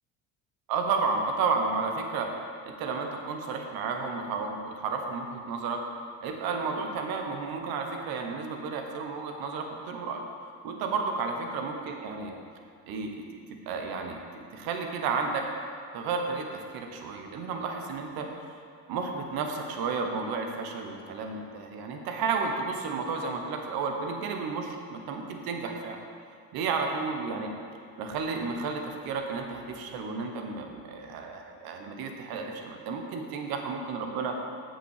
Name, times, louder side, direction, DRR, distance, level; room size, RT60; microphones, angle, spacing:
voice 1, 0.7-2.3 2.6-5.8 6.2-10.2 10.6-12.3 12.9-13.4 13.7-15.4 15.9-18.3 18.9-26.0 26.5-27.5 28.0-34.4, right 4 dB, 75° right, 3 dB, 1.2 m, -32 dB
7.8 x 6.1 x 6.5 m, 2.3 s
supercardioid pair, 90°, 36 cm